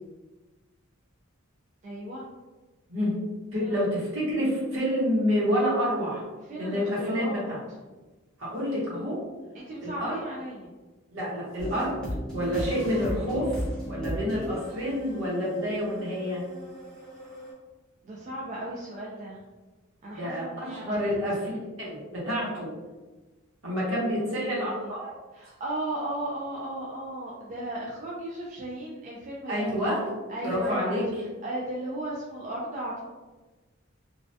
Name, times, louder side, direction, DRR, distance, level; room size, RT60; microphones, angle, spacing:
voice 1, 1.8-2.2 3.6-3.8 6.5-7.5 9.5-10.7 18.0-19.4 20.0-21.1 23.7-24.9 25.3-29.7 30.3-31.0 31.4-33.0, right 1 dB, 35° right, -5 dB, 0.3 m, -36 dB
voice 2, 3.5-6.2 6.6-7.6 8.4-9.2 9.8-10.2 11.1-12.0 12.3-13.6 13.9-16.4 20.1-21.5 21.8-22.7 23.6-25.1 29.5-30.0 30.4-31.0, equal, 65° right, -6 dB, 0.9 m, -28 dB
sound 1, 11.6-17.5, equal, 5° left, 0.6 m, -36 dB
2.2 x 2.1 x 2.6 m, 1.2 s
head